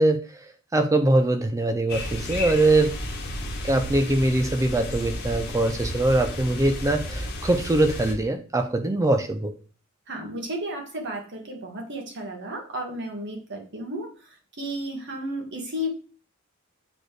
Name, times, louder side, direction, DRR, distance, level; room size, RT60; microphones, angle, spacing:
voice 1, 0.0-3.0 3.6-9.5, right 2 dB, 15° right, 6 dB, 0.4 m, -22 dB
sound 1, 1.9-8.1, left 1 dB, 50° left, 1.2 m, -33 dB
voice 2, 10.1-14.3 14.6-15.9, equal, 60° right, 2 dB, 1.7 m, -33 dB
7.9 x 4.2 x 3.3 m, 0.38 s
head